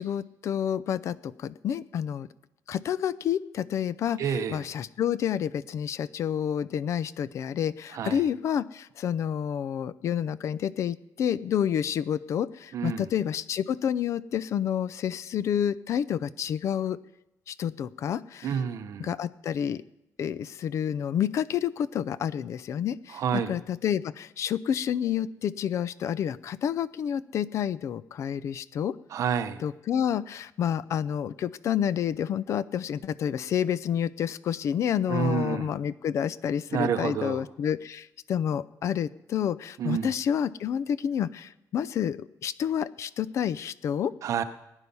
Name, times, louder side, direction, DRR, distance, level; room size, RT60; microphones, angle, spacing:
voice 1, 0.0-2.3 2.7-17.0 17.5-18.6 19.0-19.8 20.2-28.9 29.6-44.1, left 9 dB, 50° left, 17 dB, 0.5 m, -29 dB
voice 2, 4.2-4.6 7.9-8.2 12.7-13.0 18.4-19.1 23.1-23.5 29.1-29.6 35.1-35.7 36.7-37.4 39.8-40.1 44.2-44.4, right 7 dB, 50° right, 10 dB, 0.9 m, -29 dB
18.5 x 9.9 x 5.5 m, 0.90 s
cardioid pair, 170°, 7 cm